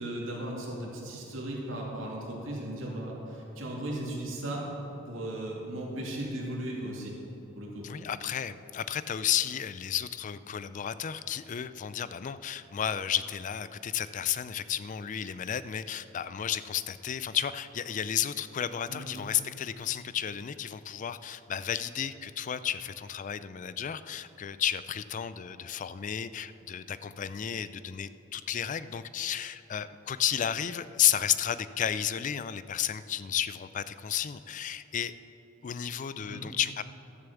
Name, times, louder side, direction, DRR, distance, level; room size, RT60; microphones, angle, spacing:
voice 1, 0.0-4.7 5.1-7.1 7.6-7.9 18.9-19.1 36.3-36.5, right 1 dB, 75° right, -3 dB, 2.5 m, -36 dB
voice 2, 7.8-35.1 35.6-36.8, left 9 dB, 40° left, 14 dB, 0.4 m, -32 dB
12.5 x 7.0 x 7.0 m, 3.0 s
head